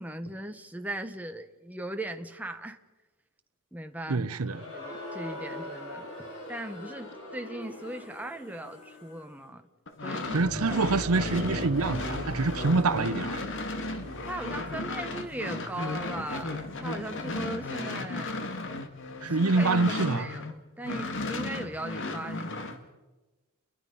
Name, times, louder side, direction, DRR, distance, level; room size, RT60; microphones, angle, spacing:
voice 1, 0.0-2.8 3.7-4.4 4.7-9.6 10.0-10.8 14.2-18.4 19.4-20.5 20.8-22.7, right 1 dB, 5° right, 1.3 m, -39 dB
voice 2, 4.1-4.6 10.3-13.4 19.2-20.3, right 3 dB, 80° right, 0.8 m, -26 dB
Crowd, 4.4-9.4, left 1 dB, 90° left, 5.3 m, -42 dB
sound 1, 9.9-20.5 20.8-22.8, left 2 dB, 60° left, 2.1 m, -35 dB
sound 2, 10.2-19.2 19.5-19.7 21.7-21.8, right 1 dB, 50° right, 3.6 m, -41 dB
29.5 x 22.5 x 5.5 m
head